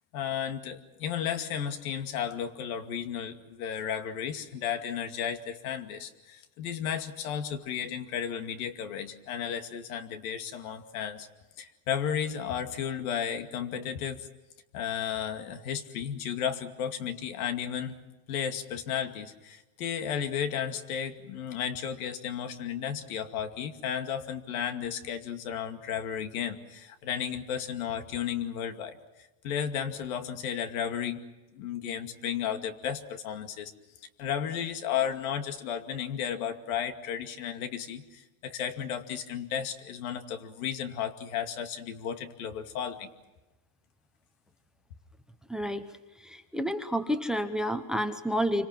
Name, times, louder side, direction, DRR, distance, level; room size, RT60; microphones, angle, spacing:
voice 1, 0.1-11.3 11.6-14.3 14.7-18.0 18.3-29.0 29.4-31.2 31.5-33.7 34.2-43.1, left 8 dB, 75° left, 7 dB, 2.5 m, -33 dB
voice 2, 45.5-45.8 46.2-48.7, equal, ahead, 10 dB, 0.9 m, -30 dB
27.5 x 25.5 x 6.1 m, 1.1 s
supercardioid pair, 150°, 43 cm